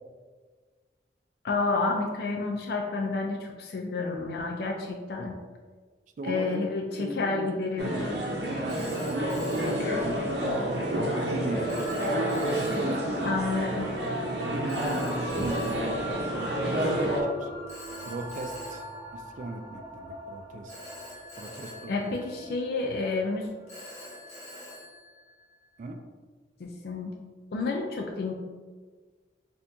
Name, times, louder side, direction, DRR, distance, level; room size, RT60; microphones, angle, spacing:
voice 1, 1.4-5.4 6.2-8.1 9.8-10.0 13.2-13.9 21.9-23.5 26.6-27.1 27.5-28.3, left 3 dB, 60° left, 1 dB, 0.4 m, -30 dB
voice 2, 6.2-6.6 7.0-7.6 8.6-10.4 11.1-11.9 12.6-13.6 14.4-17.5 18.1-18.8 19.1-20.7 21.4-22.2 25.8-26.0, right 2 dB, 45° right, 6 dB, 0.3 m, -37 dB
Telephone, 7.5-7.7 8.7-10.7 11.7-13.4 14.7-16.9 17.7-20.0 20.7-23.0 23.7-25.9, left 1 dB, 40° left, 1.1 m, -47 dB
sound 1, 7.8-17.2, right 1 dB, 65° right, 0.7 m, -29 dB
sound 2, 9.1-23.8, left 1 dB, 15° right, 1.1 m, -41 dB
4.3 x 2.8 x 2.6 m, 1.5 s
head